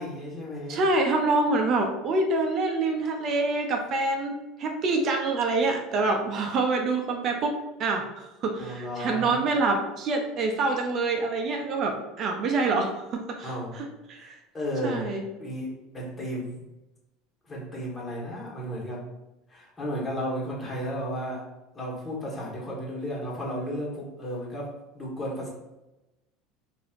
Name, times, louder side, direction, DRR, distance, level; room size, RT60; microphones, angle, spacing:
voice 1, 0.0-0.8 8.6-9.4 13.4-13.9 14.1-15.1 15.4-16.6 17.5-19.1 19.5-21.4 21.7-25.5, equal, 20° left, -4 dB, 1.4 m, -34 dB
voice 2, 0.7-4.3 4.6-14.3 14.8-15.2, right 3 dB, 50° right, 2 dB, 0.5 m, -26 dB
4.1 x 2.6 x 2.5 m, 0.99 s
hypercardioid pair, 80°, 0 cm